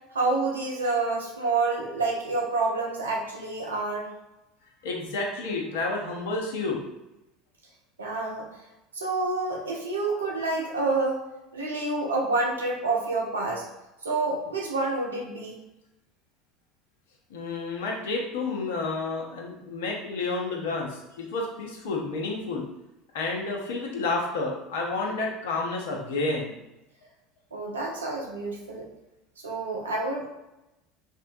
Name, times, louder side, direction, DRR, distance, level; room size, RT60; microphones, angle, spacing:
voice 1, 0.1-4.1 8.0-8.5 8.9-11.2 11.5-13.6 14.0-15.6 27.5-28.9 29.4-30.3, right 3 dB, 85° right, -1 dB, 0.6 m, -28 dB
voice 2, 4.8-6.8 17.3-22.6 23.1-26.5, left 3 dB, 70° left, -1 dB, 0.7 m, -30 dB
3.5 x 2.2 x 2.6 m, 0.95 s
hypercardioid pair, 70°, 0 cm